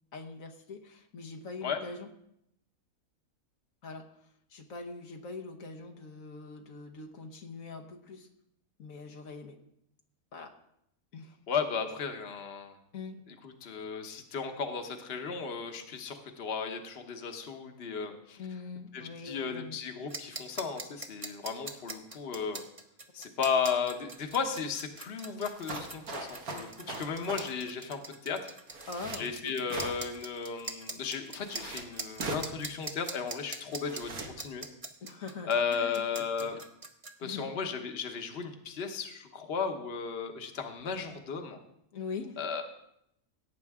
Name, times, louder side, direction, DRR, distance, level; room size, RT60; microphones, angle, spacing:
voice 1, 0.1-2.1 3.8-4.1 4.5-8.3 8.8-9.6 10.3-10.6 11.1-11.4 12.9-13.2 18.4-19.8 26.8-27.0 28.9-29.7 35.0-36.0 36.4-36.6 37.2-37.5 41.9-42.4, left 4 dB, 70° left, 4 dB, 1.3 m, -43 dB
voice 2, 11.5-12.8 13.4-18.4 18.9-22.6 23.1-28.5 29.1-34.7 35.5-36.6 37.2-41.6 42.4-42.6, left 6 dB, 50° left, 6 dB, 1.2 m, -35 dB
sound 1, 20.1-37.1, right 3 dB, 25° right, 0.9 m, -42 dB
sound 2, 25.4-27.5 28.7-29.2 29.7-30.2 31.4-31.8 32.2-32.5 33.8-34.3, right 3 dB, 90° right, 2.0 m, -40 dB
17.5 x 8.8 x 3.6 m, 0.77 s
omnidirectional pair, 1.5 m